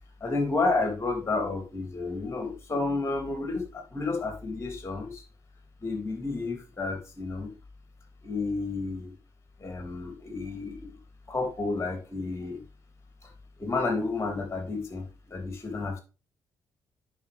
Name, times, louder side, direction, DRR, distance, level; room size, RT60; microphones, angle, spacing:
voice 1, 0.2-5.2 5.8-7.5 8.2-9.1 9.6-11.0 11.3-12.6 13.6-16.0, left 3 dB, 30° left, 4 dB, 3.2 m, -31 dB
9.2 x 6.1 x 3.5 m, 0.31 s
figure-of-eight pair, 40°, 10 cm